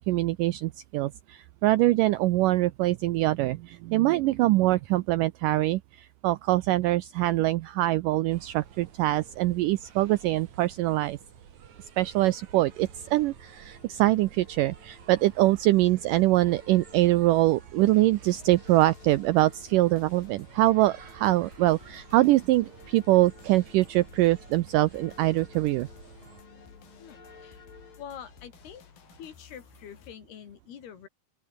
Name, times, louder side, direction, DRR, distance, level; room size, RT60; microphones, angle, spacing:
voice 1, 0.0-11.2 12.0-25.9, right 17 dB, 85° right, 1.9 m, -24 dB
sound 1, 8.3-26.4, right 8 dB, 50° right, 3.5 m, -51 dB
sound 2, 12.6-28.0, left 5 dB, 35° left, 3.7 m, -56 dB
sound 3, 18.1-30.1, left 8 dB, 65° left, 4.8 m, -55 dB
voice 2, 27.0-27.6 28.0-28.8 29.1-31.1, left 9 dB, 80° left, 4.8 m, -45 dB
open air
omnidirectional pair, 4.5 m